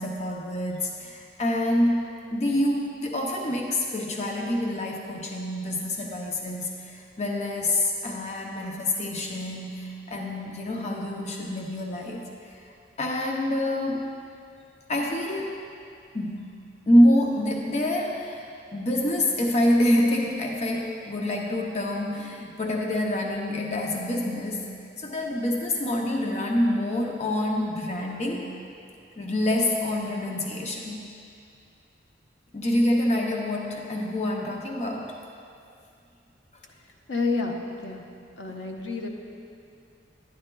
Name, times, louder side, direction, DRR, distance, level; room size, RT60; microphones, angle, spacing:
voice 1, 0.0-12.6 13.0-14.0 14.9-15.6 16.1-16.5 16.9-24.7 25.0-28.5 29.2-31.1 32.5-35.1, left 1 dB, 35° left, 0 dB, 0.6 m, -26 dB
voice 2, 37.1-38.0 38.4-39.1, left 3 dB, 75° left, 1 dB, 0.7 m, -29 dB
11.0 x 9.7 x 2.2 m, 2.4 s
head